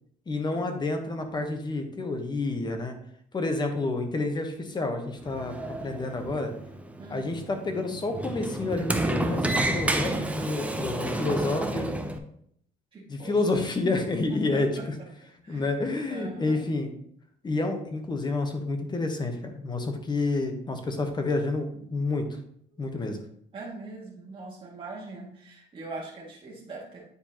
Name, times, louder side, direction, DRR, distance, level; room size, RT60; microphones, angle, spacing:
voice 1, 0.3-3.0 3.3-6.5 7.1-12.0 13.1-14.7 15.5-16.9 17.4-22.3 22.8-23.2, left 3 dB, 25° left, 6 dB, 1.1 m, -29 dB
Sliding door, 5.1-12.2, right 1 dB, 10° right, 0.6 m, -30 dB
voice 2, 7.0-7.4 12.9-13.4 14.3-15.1 15.4-15.7 16.1-16.7 23.1-23.3 23.5-27.1, right 3 dB, 30° right, -5 dB, 2.0 m, -42 dB
9.5 x 4.5 x 2.9 m, 0.67 s
cardioid pair, 110°, 17 cm